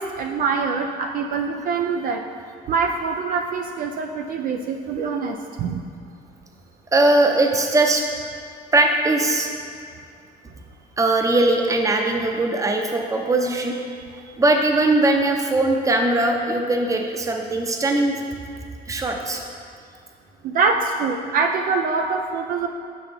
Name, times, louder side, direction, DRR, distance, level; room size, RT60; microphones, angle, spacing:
voice 1, 0.0-2.2 2.7-5.8 20.4-22.7, right 4 dB, 55° right, 3 dB, 0.4 m, -24 dB
voice 2, 6.9-8.0 8.7-9.5 11.0-13.9 14.4-18.2 18.9-19.4, right 2 dB, 20° right, 3 dB, 0.7 m, -20 dB
6.7 x 6.1 x 3.4 m, 2.2 s
cardioid pair, 110°, 17 cm